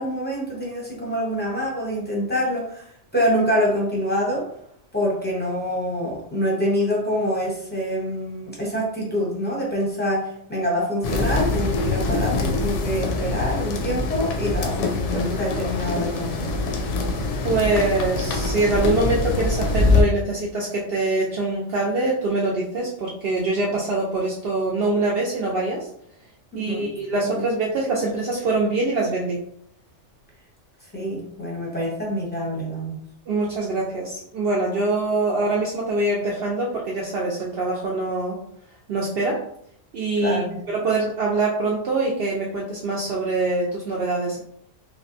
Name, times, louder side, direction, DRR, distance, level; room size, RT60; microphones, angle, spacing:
voice 1, 0.0-2.8 3.1-4.5 4.9-16.5 26.5-26.9 27.3-27.5 30.9-33.0 40.2-40.6, equal, 10° left, -4 dB, 0.7 m, -26 dB
sound 1, 11.0-20.0, left 3 dB, 75° left, 0.9 m, -24 dB
voice 2, 17.4-25.9 26.6-29.4 33.3-38.4 38.9-39.4 39.9-40.4 40.7-44.4, right 2 dB, 60° right, -3 dB, 0.7 m, -24 dB
3.5 x 2.1 x 2.5 m, 0.69 s
omnidirectional pair, 1.3 m